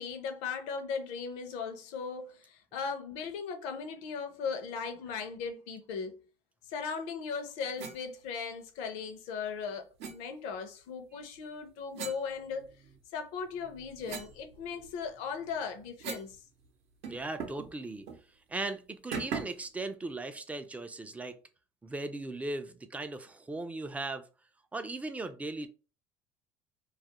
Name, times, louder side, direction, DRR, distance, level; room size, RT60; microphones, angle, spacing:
voice 1, 0.0-6.2 6.7-12.7 13.1-16.4, left 5 dB, 75° left, 0.6 m, -38 dB
sound 1, 7.8-8.0 10.0-10.2 11.9-13.0 13.5-16.4 16.6-16.7 17.0-17.7 18.1-18.2 19.1-19.7, right 6 dB, 65° right, 0.6 m, -41 dB
voice 2, 17.1-18.1 18.5-21.4 21.8-24.2 24.7-25.7, right 2 dB, 10° right, 0.3 m, -38 dB
2.3 x 2.0 x 2.8 m
supercardioid pair, 110°, 11 cm